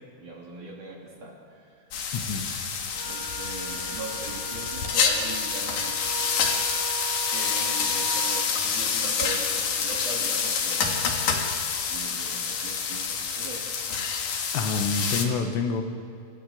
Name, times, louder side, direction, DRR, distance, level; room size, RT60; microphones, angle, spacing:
voice 1, 0.2-1.9 3.0-6.1 7.3-11.4 11.9-13.7, right 2 dB, 45° right, -1 dB, 3.7 m, -40 dB
sound 1, 1.9-15.2, left 6 dB, 55° left, 2.6 m, -27 dB
voice 2, 2.1-2.7 14.5-15.8, left 4 dB, 75° left, 5 dB, 3.9 m, -27 dB
Wind instrument woodwind instrument, 2.9-8.5, right 7 dB, 75° right, 3.9 m, -39 dB
26.5 x 16.0 x 9.5 m, 2.4 s
omnidirectional pair, 6.0 m